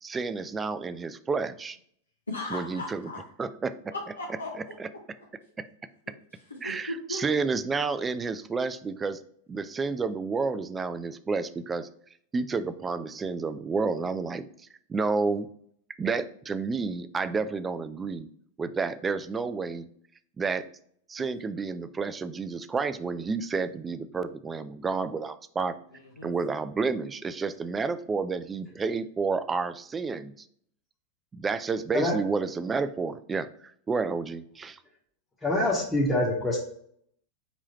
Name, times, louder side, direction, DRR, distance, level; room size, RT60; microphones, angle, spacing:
voice 1, 0.0-1.8 2.5-3.1 3.4-3.9 4.8-4.9 5.6-5.7 6.6-9.2 9.5-11.9 12.3-14.5 14.9-15.5 16.0-18.3 18.6-19.9 20.4-20.7 21.1-25.8 26.2-30.5 31.3-34.8, right 4 dB, 20° right, 13 dB, 0.3 m, -30 dB
voice 2, 2.3-3.2 3.9-4.7 5.2-5.3 6.5-7.2 25.9-26.3, left 2 dB, 90° left, -2 dB, 0.7 m, -37 dB
voice 3, 35.4-36.6, left 1 dB, 10° left, -6 dB, 1.1 m, -25 dB
4.6 x 3.1 x 2.9 m, 0.63 s
figure-of-eight pair, 90°, 0 cm